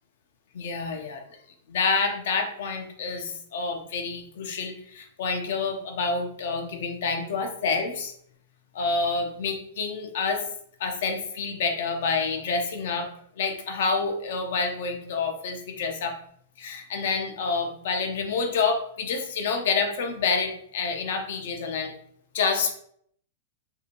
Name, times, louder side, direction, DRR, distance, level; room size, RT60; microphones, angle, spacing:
voice 1, 0.5-1.2 1.7-8.1 8.7-10.4 10.8-13.1 13.4-16.2 16.6-21.9 22.3-22.8, left 4 dB, 65° left, 5 dB, 0.6 m, -28 dB
2.7 x 2.4 x 2.8 m, 0.65 s
hypercardioid pair, 115°, 0 cm